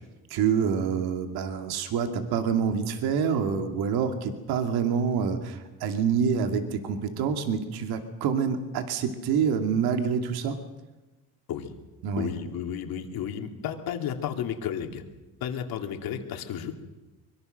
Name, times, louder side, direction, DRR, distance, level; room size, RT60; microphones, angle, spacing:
voice 1, 0.3-10.6 12.0-12.3, right 6 dB, 80° right, 6 dB, 2.5 m, -27 dB
voice 2, 12.2-15.0 15.4-16.8, left 8 dB, 70° left, 4 dB, 3.0 m, -33 dB
24.0 x 23.0 x 6.7 m, 1.1 s
cardioid pair, 105°, 37 cm